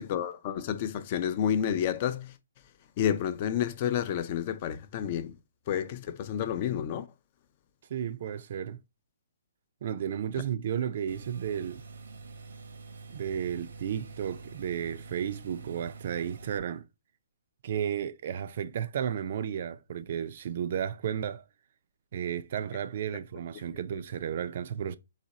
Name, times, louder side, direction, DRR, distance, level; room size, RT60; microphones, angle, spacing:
voice 1, 0.0-2.3 3.0-5.3 5.7-7.1, left 9 dB, 35° left, 0.4 m, -30 dB
voice 2, 7.9-8.8 9.8-11.8 13.1-16.9 17.6-21.4 22.1-25.0, right 9 dB, 50° right, 0.4 m, -33 dB
sound 1, 11.1-16.6, right 4 dB, 75° right, 0.8 m, -46 dB
4.1 x 2.8 x 4.0 m
hypercardioid pair, 155°, 0 cm